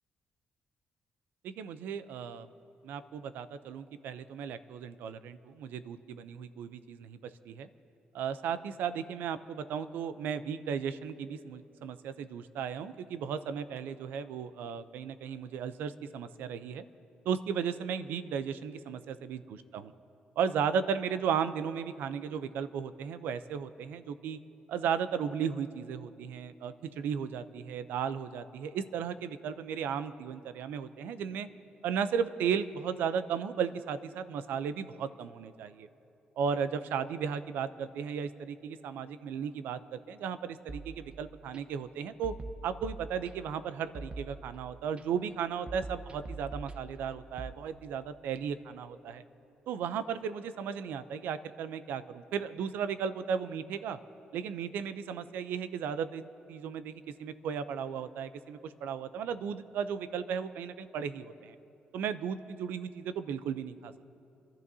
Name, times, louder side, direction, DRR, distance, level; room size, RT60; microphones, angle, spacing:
voice 1, 1.4-2.5 2.8-7.2 7.5-7.7 8.1-16.8 17.3-19.9 20.4-24.4 24.7-31.5 31.8-35.9 36.4-42.3 42.6-49.2 49.7-54.0 54.3-56.2 56.5-61.5 61.9-64.1, right 7 dB, 85° right, 12 dB, 0.6 m, -35 dB
sound 1, 40.7-41.6 42.2-43.6 43.9-45.0 45.7-47.5, right 3 dB, 35° right, 0.8 m, -44 dB
29.5 x 12.0 x 2.8 m, 2.8 s
cardioid pair, 95°, 3 cm